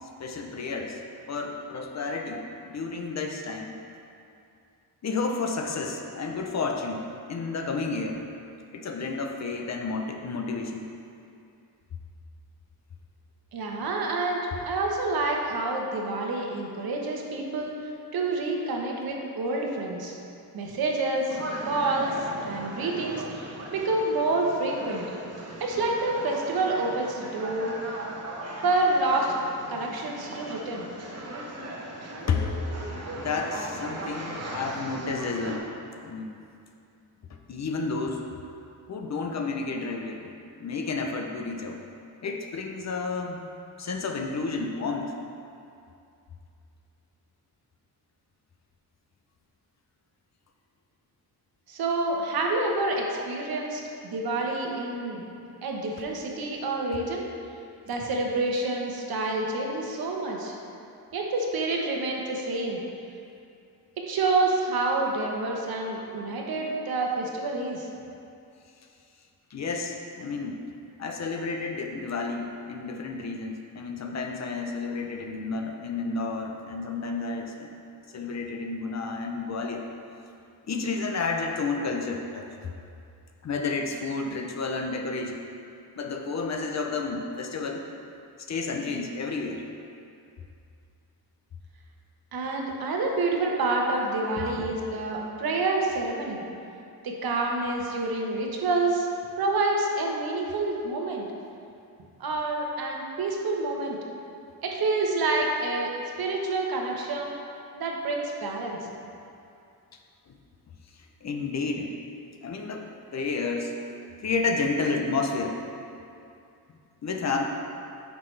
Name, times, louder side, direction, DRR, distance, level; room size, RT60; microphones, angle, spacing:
voice 1, 0.2-1.0 1.3-3.8 5.0-8.2 8.7-10.8 32.3-32.5 33.2-35.7 36.0-36.5 37.5-38.2 38.9-40.3 40.6-41.8 42.2-43.4 43.8-45.2 69.5-70.6 71.0-77.7 78.1-79.8 80.7-82.5 83.4-85.4 85.9-87.8 88.5-89.7 94.4-94.7 110.3-110.4 111.2-111.9 112.4-113.8 114.2-115.6 116.7-117.4, left 4 dB, 45° left, 3 dB, 0.6 m, -31 dB
voice 2, 13.5-17.7 18.1-20.2 20.5-21.4 21.6-25.0 25.6-27.7 28.6-29.3 29.7-30.9 51.7-55.2 55.6-57.2 57.9-60.5 61.1-62.8 64.0-67.9 92.3-96.4 97.0-99.1 99.4-101.3 102.2-104.0 104.6-105.9 106.2-107.4 107.8-108.8, right 2 dB, 70° right, 0 dB, 1.1 m, -28 dB
sound 1, 21.3-35.6, right 1 dB, 40° right, 1.0 m, -38 dB
9.2 x 5.9 x 3.3 m, 2.6 s
wide cardioid pair, 165°, 38 cm